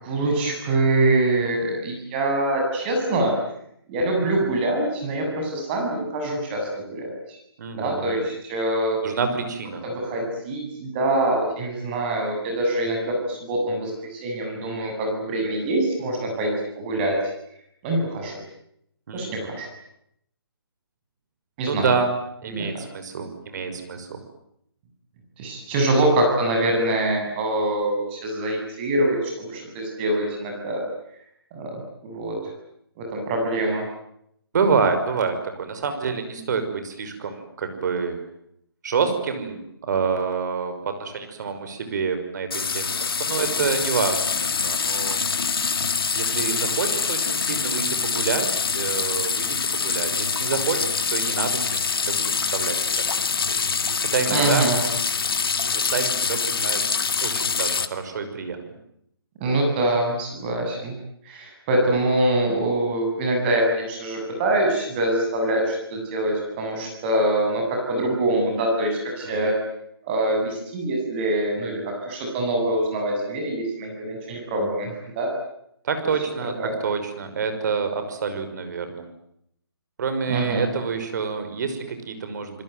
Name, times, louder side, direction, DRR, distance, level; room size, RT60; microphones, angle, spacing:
voice 1, 0.0-3.3 3.9-7.4 7.7-9.0 9.8-17.2 17.8-18.4 19.1-19.7 21.6-21.9 22.5-22.7 25.4-30.8 31.5-32.5 33.0-33.8 54.3-54.8 59.4-60.9 61.2-69.5 70.0-75.3 76.6-76.8 80.3-80.6, right 1 dB, 25° right, 2 dB, 7.9 m, -24 dB
voice 2, 7.6-8.2 9.0-9.8 19.1-19.3 21.7-22.1 22.4-24.2 34.5-38.2 38.8-44.2 44.6-45.2 46.1-49.6 49.8-53.0 54.0-54.6 55.7-56.9 57.2-58.6 69.2-69.5 75.8-76.5 76.8-79.1 80.0-82.6, right 5 dB, 45° right, 8 dB, 5.9 m, -27 dB
sound 1, 42.5-57.9, left 5 dB, 65° left, 2.2 m, -25 dB
28.5 x 21.0 x 9.4 m, 0.76 s
hypercardioid pair, 155°, 13 cm